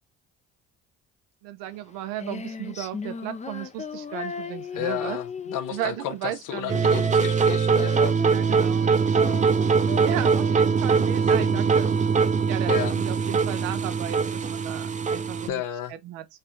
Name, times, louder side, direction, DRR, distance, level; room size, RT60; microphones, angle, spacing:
voice 1, 1.4-5.2 5.7-6.8 8.3-9.4 10.0-11.9 12.3-15.6 15.9-16.2, right 12 dB, 85° right, 0.7 m, -35 dB
Female singing, 1.7-12.6, left 5 dB, 20° left, 0.5 m, -38 dB
voice 2, 4.7-8.4 11.2-11.5 12.7-13.0 15.5-15.9, left 11 dB, 70° left, 0.8 m, -32 dB
sound 1, 6.7-15.5, right 5 dB, 25° right, 0.5 m, -22 dB
3.3 x 2.4 x 4.4 m
supercardioid pair, 70°, 32 cm